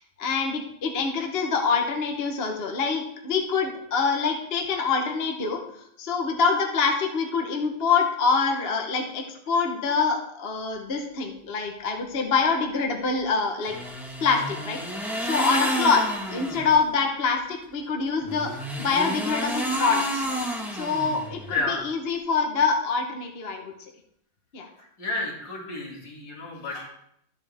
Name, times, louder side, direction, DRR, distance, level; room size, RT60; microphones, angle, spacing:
voice 1, 0.0-5.6 6.0-13.7 14.2-14.8 15.2-16.0 16.3-18.5 18.8-20.2 20.7-23.7 24.5-24.7, left 5 dB, 35° left, 2 dB, 1.2 m, -25 dB
sound 1, 13.6-16.8 18.2-21.6, equal, ahead, 1.5 m, -30 dB
voice 2, 21.5-21.8 24.8-26.9, left 3 dB, 65° left, -3 dB, 3.3 m, -31 dB
13.0 x 8.1 x 3.6 m, 0.74 s
omnidirectional pair, 2.1 m